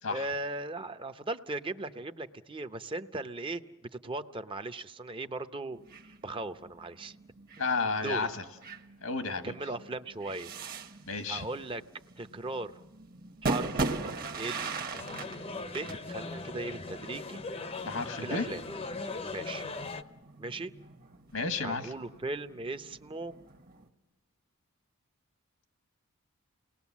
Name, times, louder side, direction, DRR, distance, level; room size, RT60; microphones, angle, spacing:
voice 1, 0.1-3.6 4.0-7.1 8.0-8.3 9.4-10.5 11.3-11.8 12.2-12.7 13.4-13.9 14.4-14.8 15.7-17.4 18.2-18.6 19.3-19.6 20.4-20.7 21.6-23.3, right 2 dB, 25° right, 10 dB, 0.7 m, -38 dB
sound 1, 5.7-23.9, right 3 dB, 40° right, 1.2 m, -40 dB
voice 2, 7.6-8.4 9.0-9.5 11.0-11.5 17.8-18.5 21.3-21.9, left 4 dB, 80° left, 7 dB, 1.5 m, -32 dB
sound 2, 14.9-20.0, left 3 dB, 25° left, 0.7 m, -39 dB
29.5 x 20.0 x 7.3 m, 1.1 s
head